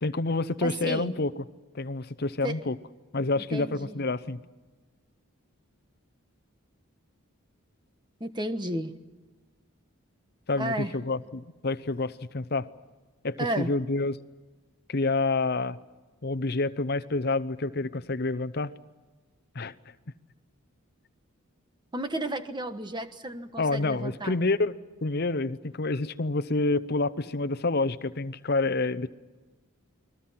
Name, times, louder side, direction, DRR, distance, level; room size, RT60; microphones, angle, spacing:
voice 1, 0.0-1.3 1.7-2.7 3.1-4.4 10.5-12.7 13.2-14.1 14.9-15.8 16.2-18.7 19.5-19.7 23.6-24.7 25.0-29.1, left 3 dB, 45° left, 14 dB, 0.8 m, -28 dB
voice 2, 0.6-1.1 2.4-2.7 3.5-4.0 8.2-8.9 10.5-10.9 13.4-13.7 21.9-24.4, right 1 dB, 20° right, 8 dB, 1.2 m, -33 dB
29.5 x 21.5 x 5.8 m, 1.3 s
head